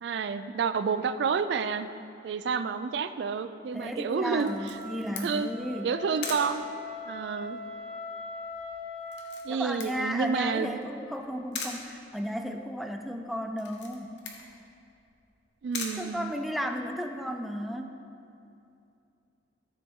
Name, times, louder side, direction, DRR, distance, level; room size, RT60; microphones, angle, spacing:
voice 1, 0.0-1.9 2.2-4.8 5.2-5.5 5.8-6.7 7.1-7.6 9.4-10.8 15.6-16.3, right 5 dB, 70° right, 11 dB, 0.3 m, -29 dB
voice 2, 3.7-5.9 9.5-14.2 16.0-17.9, equal, ahead, 5 dB, 0.4 m, -34 dB
Camera, 4.4-16.9, left 4 dB, 80° left, 1.1 m, -43 dB
Wind instrument woodwind instrument, 4.4-9.4, left 2 dB, 30° right, 1.5 m, -41 dB
13.0 x 6.9 x 3.7 m, 2.6 s
head